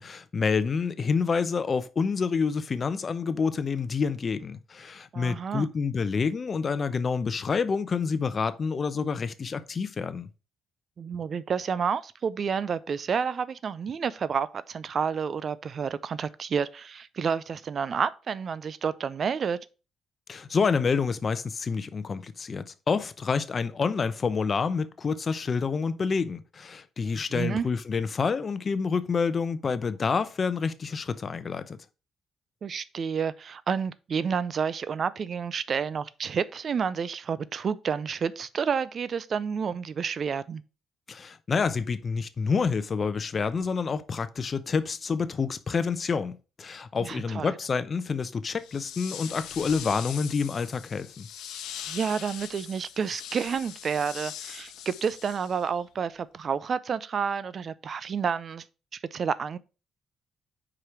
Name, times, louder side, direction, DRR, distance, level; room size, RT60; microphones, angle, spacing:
voice 1, 0.0-10.3 20.3-31.8 41.1-51.3, left 5 dB, 40° left, 0.7 m, -28 dB
voice 2, 5.1-5.7 11.0-19.6 27.1-27.7 32.6-40.6 47.0-47.5 51.9-58.6 58.9-59.6, right 6 dB, 50° right, 0.4 m, -30 dB
sound 1, 48.5-55.8, left 9 dB, 85° left, 0.8 m, -41 dB
4.9 x 4.8 x 5.8 m
cardioid pair, 90°, 0 cm